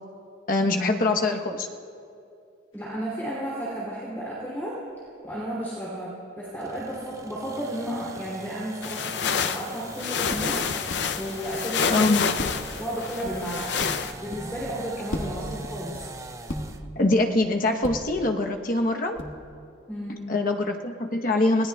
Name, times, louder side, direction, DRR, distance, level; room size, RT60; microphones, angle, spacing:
voice 1, 0.5-1.7 11.9-12.3 17.0-19.2 20.3-21.7, left 2 dB, 45° left, 3 dB, 0.9 m, -23 dB
sound 1, 2.7-2.8 7.0-7.2 9.5-9.7 10.3-11.0 11.4-11.9 12.4-14.8 15.1-16.9 17.8-18.2 19.1-19.5, equal, 80° left, 1.5 m, -37 dB
voice 2, 2.7-4.8 5.2-10.9 11.2-12.1 12.8-13.9 14.2-16.0 19.9-20.2, right 1 dB, 10° left, -7 dB, 2.8 m, -33 dB
sound 2, 6.6-16.9, right 2 dB, 15° right, 0.4 m, -42 dB
sound 3, 8.8-14.1, left 6 dB, 60° left, 0.5 m, -28 dB
26.5 x 18.0 x 2.3 m, 2.6 s
head